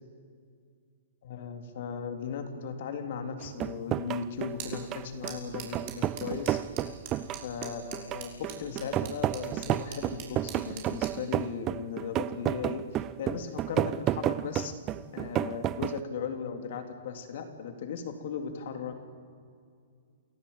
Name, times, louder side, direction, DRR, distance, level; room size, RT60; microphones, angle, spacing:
voice 1, 1.2-6.6 7.4-14.7 15.1-19.1, left 6 dB, 60° left, 5 dB, 3.6 m, -37 dB
sound 1, 3.4-16.0, right 13 dB, 25° right, 0.6 m, -31 dB
sound 2, 4.3-11.2, right 6 dB, 45° right, 6.0 m, -46 dB
28.5 x 17.5 x 8.9 m, 2.2 s
hypercardioid pair, 145°, 0 cm